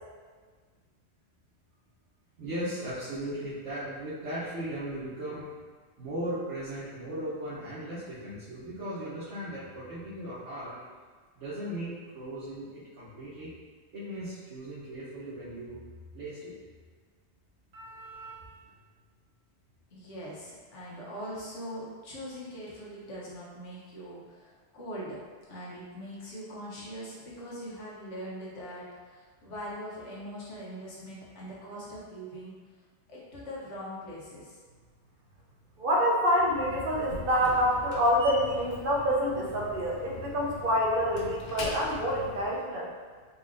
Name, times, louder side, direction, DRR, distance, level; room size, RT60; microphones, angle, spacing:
voice 1, 2.4-5.5 6.0-10.7 11.4-13.5 13.9-15.8 16.1-16.5, right 1 dB, 90° right, -12 dB, 1.3 m, -37 dB
voice 2, 17.7-18.4 35.8-42.9, equal, 55° right, -4 dB, 0.9 m, -27 dB
voice 3, 19.9-25.2 25.5-32.5 33.1-34.6, equal, 85° left, -6 dB, 1.3 m, -42 dB
Slam, 36.4-42.6, left 3 dB, 60° left, 0.5 m, -41 dB
4.0 x 3.0 x 2.6 m, 1.5 s
omnidirectional pair, 1.2 m